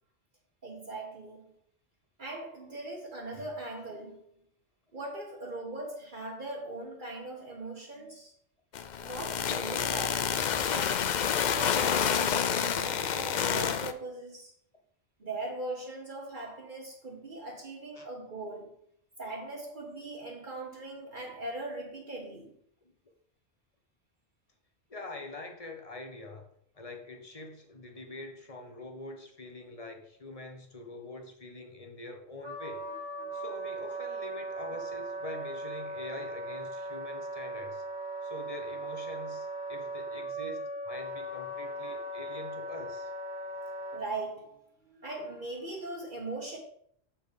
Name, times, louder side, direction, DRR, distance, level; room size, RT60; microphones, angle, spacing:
voice 1, 0.6-1.5 2.2-4.4 4.9-8.3 9.0-10.3 10.7-14.5 15.2-18.8 19.2-22.5 33.2-33.3 43.9-46.6, right 2 dB, 50° right, 1.5 m, -40 dB
sound 1, 8.7-13.9, left 8 dB, 55° left, 0.5 m, -29 dB
voice 2, 24.9-26.5 26.7-32.8 33.3-37.8 38.2-43.1, left 2 dB, 35° left, 1.1 m, -44 dB
Wind instrument woodwind instrument, 32.4-44.0, right 1 dB, 75° right, 2.2 m, -38 dB
7.5 x 4.4 x 5.2 m
omnidirectional pair, 1.1 m